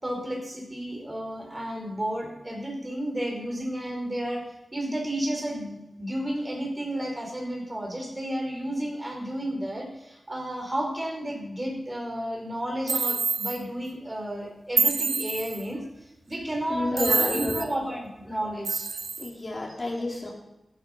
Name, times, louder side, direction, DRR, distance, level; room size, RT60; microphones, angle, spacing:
voice 1, 0.0-18.9 19.7-19.8, right 1 dB, 20° right, 0 dB, 4.8 m, -32 dB
sound 1, 12.9-13.6 14.8-15.6 17.0-17.7 18.6-19.3, right 4 dB, 65° right, 1.1 m, -26 dB
voice 2, 16.7-17.5 19.2-20.3, left 2 dB, 30° left, -3 dB, 4.4 m, -30 dB
13.5 x 13.0 x 5.8 m, 0.92 s
wide cardioid pair, 115°, 0 cm